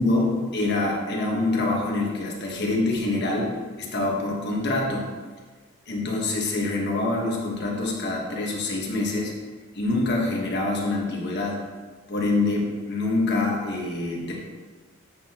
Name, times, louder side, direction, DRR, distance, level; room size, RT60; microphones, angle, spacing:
voice 1, 0.0-5.1 5.9-9.3 9.7-11.6 12.1-14.4, left 2 dB, 55° left, -1 dB, 1.4 m, -25 dB
8.5 x 5.7 x 3.0 m, 1.4 s
head